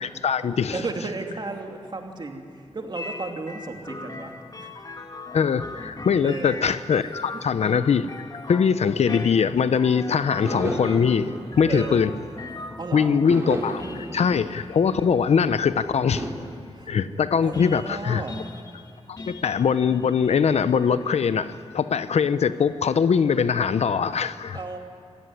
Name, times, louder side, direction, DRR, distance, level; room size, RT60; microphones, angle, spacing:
voice 1, 0.0-0.8 5.3-8.1 8.5-12.1 12.9-16.3 16.9-18.2 19.1-24.6, left 6 dB, 75° left, 13 dB, 0.7 m, -22 dB
voice 2, 0.7-4.7 6.2-6.6 7.3-7.4 11.7-12.0 12.8-13.2 16.7-16.9 17.4-18.5 24.5-24.8, right 3 dB, 40° right, 3 dB, 2.7 m, -34 dB
sound 1, 3.0-21.6, left 2 dB, 35° left, 1.6 m, -41 dB
sound 2, 10.4-12.7 13.3-15.6 16.2-16.3, right 1 dB, 25° right, 3.8 m, -34 dB
26.0 x 17.5 x 9.9 m, 2.5 s
wide cardioid pair, 105°, 11 cm